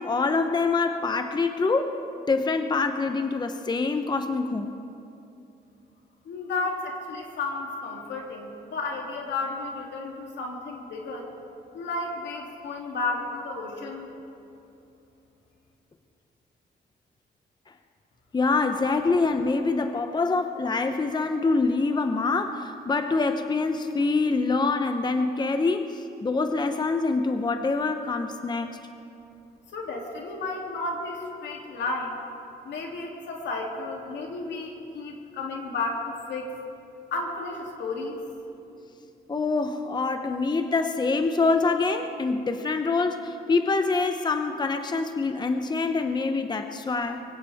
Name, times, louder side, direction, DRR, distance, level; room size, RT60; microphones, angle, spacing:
voice 1, 0.0-2.0 2.3-4.7 18.3-28.8 39.3-47.2, left 3 dB, 25° left, 7 dB, 0.8 m, -25 dB
voice 2, 6.2-11.3 11.7-14.1 29.7-32.2 32.6-36.5 37.1-38.2, left 3 dB, 80° left, 0 dB, 2.8 m, -32 dB
23.5 x 16.5 x 3.5 m, 2.7 s
cardioid pair, 90°, 18 cm